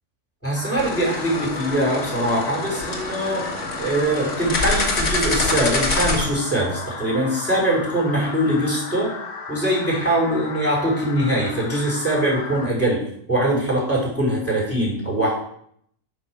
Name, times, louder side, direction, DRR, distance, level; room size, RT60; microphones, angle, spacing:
voice 1, 0.4-3.5 3.8-9.1 9.5-13.0 13.3-15.3, right 1 dB, 10° left, -4 dB, 5.0 m, -22 dB
sound 1, 0.5-12.7, left 4 dB, 75° left, 1.8 m, -35 dB
sound 2, 0.8-6.2, left 2 dB, 50° left, 2.0 m, -26 dB
9.7 x 6.3 x 6.3 m, 0.67 s
omnidirectional pair, 1.7 m